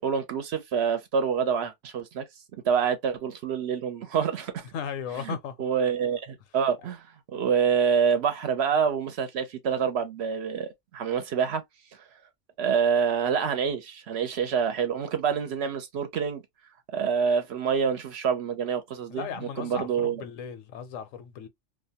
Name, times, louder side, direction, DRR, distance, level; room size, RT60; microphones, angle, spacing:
voice 1, 0.0-2.3 2.6-4.7 5.2-11.6 11.9-12.1 12.6-16.4 16.9-19.3 19.6-20.2, right 7 dB, 65° right, 0.7 m, -27 dB
voice 2, 4.7-5.5 19.1-21.5, left 7 dB, 85° left, 1.0 m, -36 dB
2.5 x 2.1 x 2.7 m
omnidirectional pair, 1.3 m